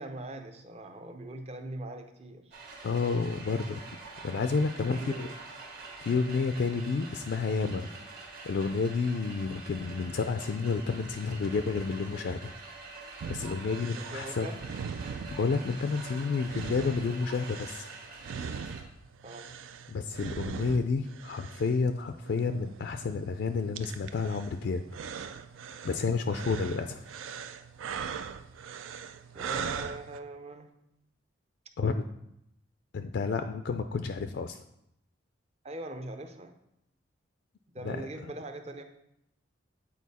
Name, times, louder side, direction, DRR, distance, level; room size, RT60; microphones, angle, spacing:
voice 1, 0.0-2.6 4.9-5.4 14.0-14.6 19.2-19.6 29.3-30.8 35.6-36.6 37.7-38.8, right 1 dB, 35° right, 6 dB, 0.6 m, -41 dB
sound 1, 2.5-18.8, right 3 dB, 50° right, 1.5 m, -46 dB
voice 2, 2.8-3.8 4.2-5.3 6.0-7.9 8.5-12.5 13.3-14.5 15.3-17.9 19.9-24.8 25.8-27.0 31.8-32.0 32.9-34.6 37.8-38.0, left 4 dB, 60° left, 8 dB, 0.3 m, -30 dB
sound 2, 13.2-30.2, right 6 dB, 85° right, 0.4 m, -41 dB
8.3 x 4.3 x 4.1 m, 0.81 s
head